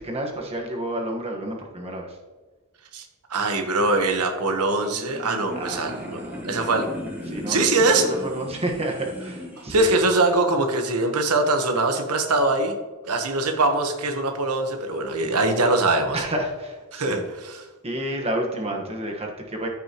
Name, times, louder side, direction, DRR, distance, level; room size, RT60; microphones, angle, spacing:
voice 1, 0.0-2.2 5.5-6.9 7.3-7.6 8.0-9.9 16.1-17.2 17.8-19.7, right 1 dB, 25° right, 1 dB, 1.4 m, -30 dB
voice 2, 2.9-6.9 7.5-8.1 9.6-12.8 13.1-16.2 16.9-17.7, right 2 dB, 90° right, 5 dB, 1.1 m, -22 dB
sound 1, 4.8-9.7, equal, 5° right, 2.0 m, -36 dB
14.0 x 6.0 x 3.0 m, 1.3 s
head